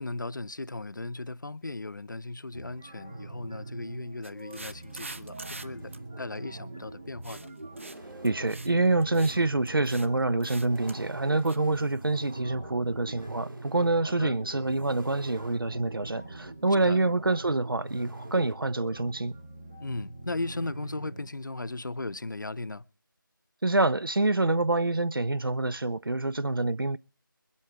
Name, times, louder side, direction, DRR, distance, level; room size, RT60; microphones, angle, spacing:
voice 1, 0.0-7.5 14.0-14.4 16.8-17.0 19.8-22.8, left 2 dB, 60° left, 0.6 m, -37 dB
sound 1, 2.5-21.3, right 2 dB, 10° right, 0.7 m, -44 dB
sound 2, 4.2-5.6 5.9-6.0 7.2-7.5 7.8-8.0 8.2-8.7 9.0-9.4 9.6-10.1 10.4-11.0 11.4-11.6, right 2 dB, 35° right, 0.9 m, -44 dB
sound 3, 5.8-18.6, right 1 dB, 70° right, 3.5 m, -47 dB
voice 2, 8.2-19.3 23.6-27.0, right 2 dB, 90° right, 0.6 m, -26 dB
22.5 x 8.4 x 4.8 m
figure-of-eight pair, 170°, 11 cm